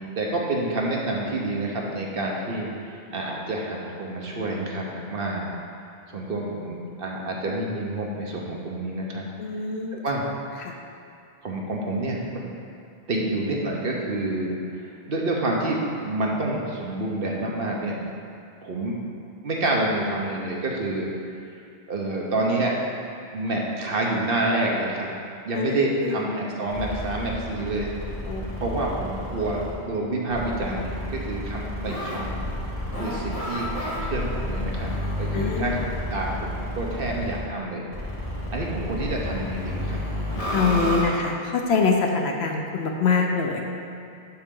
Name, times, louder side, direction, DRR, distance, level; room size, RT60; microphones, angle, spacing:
voice 1, 0.0-5.5 6.1-9.2 9.9-10.2 11.4-12.5 13.1-18.0 18.6-19.0 19.4-21.1 21.9-22.7 23.3-25.1 25.4-27.9 28.6-32.4 33.0-34.9 35.2-35.8 36.1-37.8 38.5-40.0 40.8-40.9, right 2 dB, 55° right, -2 dB, 1.1 m, -28 dB
voice 2, 9.4-10.0 10.6-10.8 25.5-26.2 28.3-28.5 35.3-35.9 40.5-43.7, left 4 dB, 65° left, 2 dB, 0.9 m, -24 dB
ticking cracklebox, 26.7-29.7 30.3-37.4 37.9-41.0, left 1 dB, 30° left, 1.6 m, -31 dB
11.5 x 3.9 x 3.8 m, 2.4 s
omnidirectional pair, 1.2 m